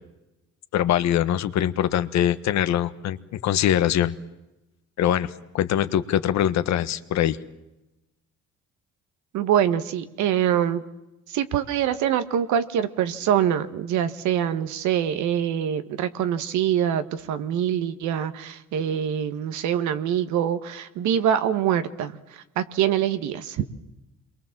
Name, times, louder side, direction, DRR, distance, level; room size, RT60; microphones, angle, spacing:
voice 1, 0.7-4.1 5.0-7.4, left 11 dB, 70° left, 12 dB, 1.4 m, -23 dB
voice 2, 9.3-10.8 11.3-23.6, right 9 dB, 85° right, 10 dB, 1.7 m, -24 dB
28.0 x 22.5 x 7.5 m, 0.98 s
cardioid pair, 115°, 29 cm